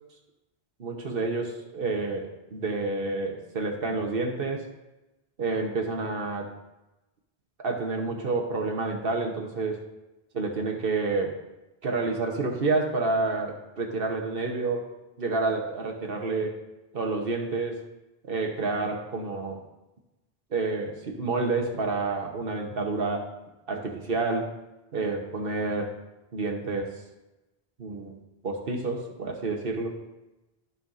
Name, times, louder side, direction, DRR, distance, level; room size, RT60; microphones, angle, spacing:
voice 1, 0.8-4.7 5.4-6.5 7.6-9.8 10.3-11.4 11.8-14.9 15.2-16.5 16.9-17.8 18.2-19.6 20.5-23.3 23.7-24.5 24.9-25.9 26.3-26.9 27.8-28.2 28.4-30.0, right 3 dB, 65° right, 2 dB, 1.3 m, -29 dB
13.5 x 5.6 x 2.6 m, 1.0 s
omnidirectional pair, 1.0 m